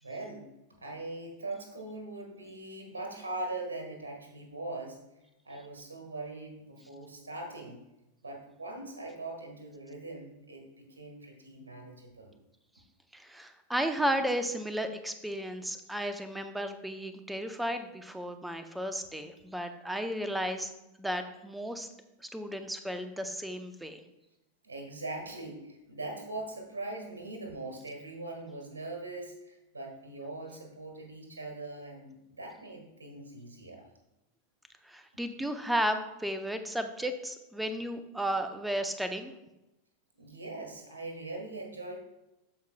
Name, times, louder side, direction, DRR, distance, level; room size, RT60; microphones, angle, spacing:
voice 1, 0.0-0.5 0.8-5.0 5.4-7.8 8.2-12.4 24.6-33.9 40.2-42.0, right 2 dB, 80° right, 3 dB, 1.7 m, -41 dB
voice 2, 13.1-20.7 21.0-21.9 22.3-24.0 34.8-39.3, equal, 5° right, 8 dB, 0.7 m, -34 dB
13.5 x 4.7 x 2.3 m, 0.94 s
figure-of-eight pair, 90°, 0 cm